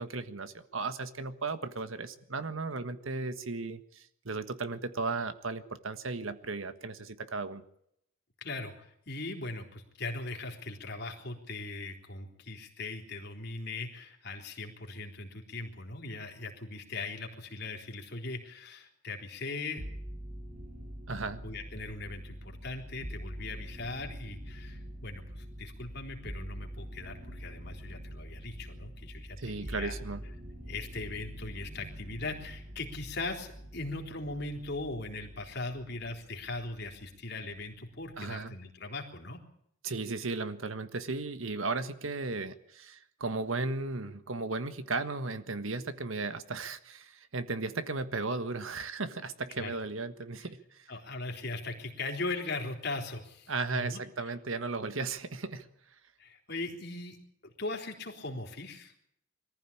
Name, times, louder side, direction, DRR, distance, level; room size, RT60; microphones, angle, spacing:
voice 1, 0.0-7.6 21.1-21.4 29.4-30.2 38.2-38.5 39.8-50.9 53.5-55.7, right 3 dB, 80° right, 11 dB, 1.5 m, -35 dB
voice 2, 8.4-19.8 21.4-30.0 30.7-39.4 49.6-49.7 50.9-54.3 56.2-58.9, left 3 dB, 55° left, 2 dB, 3.8 m, -39 dB
sound 1, 19.8-37.2 37.5-38.3, equal, 35° right, 4.8 m, -45 dB
22.5 x 14.5 x 8.7 m, 0.73 s
head